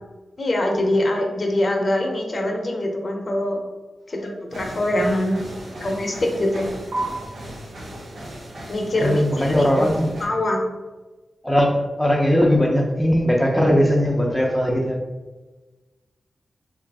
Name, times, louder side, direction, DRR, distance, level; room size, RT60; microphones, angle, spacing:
voice 1, 0.4-3.6 4.1-5.4 5.8-6.7 8.7-9.9 10.2-10.6, left 1 dB, 50° left, 1 dB, 0.7 m, -23 dB
sound 1, 4.5-10.2, right 1 dB, 85° right, 0.8 m, -35 dB
voice 2, 9.0-10.1 11.4-15.0, equal, 5° left, -1 dB, 0.5 m, -19 dB
3.1 x 2.4 x 3.4 m, 1.2 s
cardioid pair, 60°, 0 cm